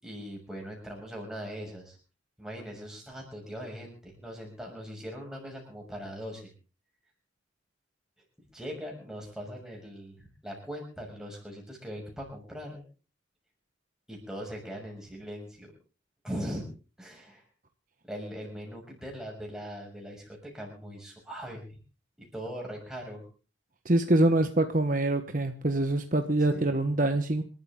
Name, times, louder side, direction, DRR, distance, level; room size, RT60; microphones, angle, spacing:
voice 1, 0.0-2.0 2.4-6.5 8.5-12.8 14.1-15.7 16.2-16.6 17.0-17.4 18.1-21.8 22.2-23.2 26.5-26.8, equal, 5° right, -1 dB, 6.7 m, -40 dB
voice 2, 23.8-27.4, right 2 dB, 45° right, 7 dB, 1.1 m, -25 dB
27.0 x 13.0 x 3.7 m, 0.37 s
head